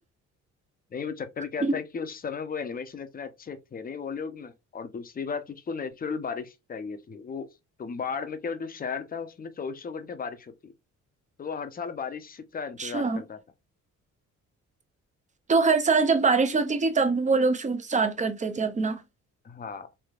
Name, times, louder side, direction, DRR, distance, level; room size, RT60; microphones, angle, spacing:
voice 1, 0.9-7.5 7.8-10.7 11.4-13.4 19.4-19.9, left 5 dB, 30° left, 0.6 m, -35 dB
voice 2, 12.8-13.2 15.5-19.0, right 4 dB, 25° right, 0.6 m, -23 dB
3.3 x 2.7 x 2.4 m
cardioid pair, 90°, 30 cm